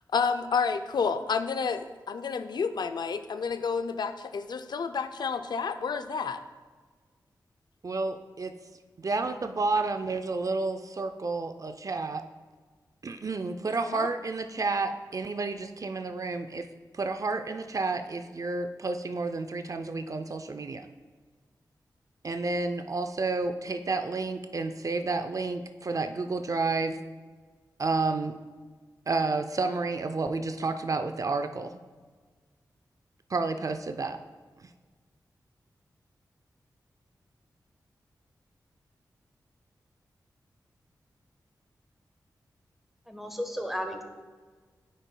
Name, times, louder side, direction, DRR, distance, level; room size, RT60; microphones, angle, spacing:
voice 1, 0.1-6.4 13.9-14.1, left 5 dB, 70° left, 9 dB, 0.4 m, -30 dB
voice 2, 7.8-8.5 9.0-12.2 13.0-16.7 16.9-20.9 22.2-27.0 27.8-28.3 29.1-31.8 33.3-34.2, right 3 dB, 45° right, 7 dB, 0.4 m, -30 dB
voice 3, 43.1-44.0, equal, ahead, 4 dB, 1.2 m, -34 dB
9.9 x 5.2 x 2.2 m, 1.4 s
cardioid pair, 40°, 8 cm